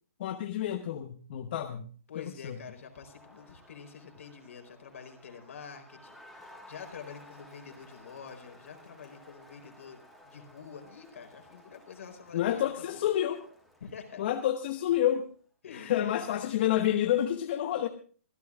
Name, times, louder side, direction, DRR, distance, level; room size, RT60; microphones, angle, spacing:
voice 1, 0.2-1.9 2.1-2.6 12.3-13.4 14.2-15.3 15.7-17.9, left 11 dB, 40° left, 7 dB, 1.0 m, -29 dB
voice 2, 2.1-13.1 13.8-14.2 15.6-16.4, left 6 dB, 70° left, 4 dB, 4.2 m, -47 dB
Crowd, 2.7-15.2, left 1 dB, ahead, 2.7 m, -56 dB
24.5 x 13.5 x 2.4 m, 0.41 s
hypercardioid pair, 160°, 8 cm